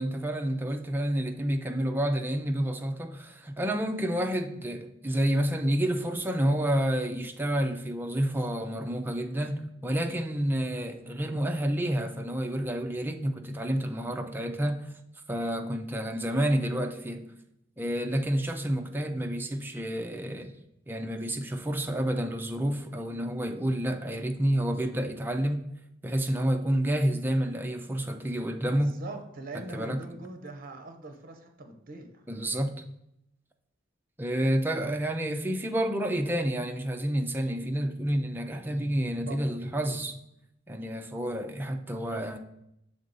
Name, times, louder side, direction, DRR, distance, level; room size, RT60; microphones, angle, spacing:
voice 1, 0.0-14.8 15.3-17.3 17.8-20.5 20.9-25.6 26.0-28.9 29.5-30.0 32.3-32.7 34.2-40.2 40.7-42.4, right 1 dB, 10° right, 0.5 m, -29 dB
voice 2, 28.6-32.3 39.3-39.5, right 2 dB, 50° right, 0.8 m, -42 dB
6.4 x 3.6 x 4.0 m
head